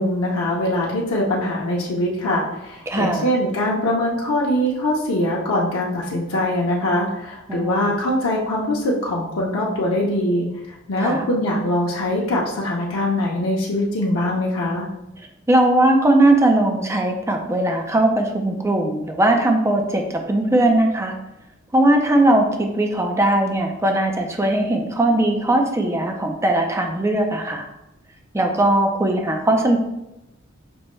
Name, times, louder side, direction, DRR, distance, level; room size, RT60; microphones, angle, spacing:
voice 1, 0.0-14.9, left 1 dB, 90° left, -4 dB, 0.6 m, -22 dB
voice 2, 2.9-3.3 7.5-7.9 11.0-11.2 15.5-21.1 21.7-27.6 28.3-29.8, right 1 dB, 15° right, 3 dB, 0.4 m, -19 dB
6.0 x 2.1 x 3.0 m, 0.92 s
head